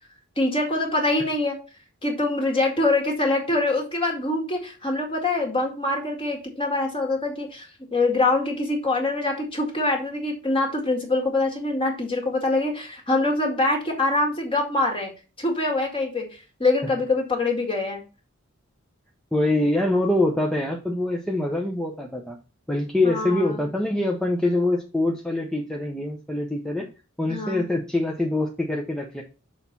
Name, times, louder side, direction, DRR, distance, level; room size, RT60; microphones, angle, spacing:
voice 1, 0.4-1.6 2.0-15.1 15.4-16.3 16.6-18.0 23.0-23.6 27.3-27.6, left 2 dB, 25° left, 1 dB, 2.0 m, -24 dB
voice 2, 19.3-22.4 22.7-26.9 27.2-29.2, left 2 dB, 5° left, -1 dB, 0.8 m, -24 dB
6.5 x 4.1 x 5.9 m, 0.32 s
head